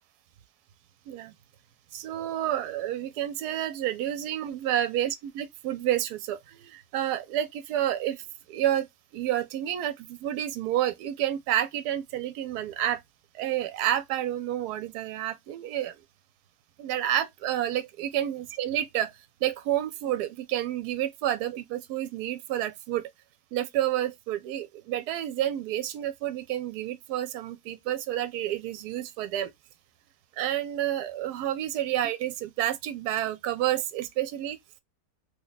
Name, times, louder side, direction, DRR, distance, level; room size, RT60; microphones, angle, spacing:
voice 1, 1.9-5.1 5.4-8.9 9.1-13.0 13.3-16.0 16.8-19.1 19.4-23.1 23.5-29.5 30.4-34.6, right 12 dB, 85° right, 1.1 m, -29 dB
3.1 x 2.2 x 3.8 m
omnidirectional pair, 1.7 m